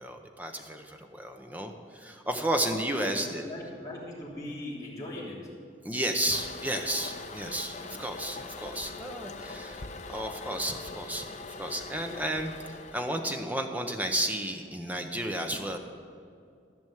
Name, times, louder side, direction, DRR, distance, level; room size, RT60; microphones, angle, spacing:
voice 1, 0.0-3.4 5.8-11.3 11.6-15.8, right 1 dB, 10° right, 4 dB, 0.8 m, -32 dB
voice 2, 3.4-5.4, left 1 dB, 20° left, -6 dB, 3.2 m, -39 dB
Toilet flush, 6.3-13.4, left 3 dB, 35° left, 0.7 m, -42 dB
14.0 x 6.2 x 9.3 m, 2.3 s
head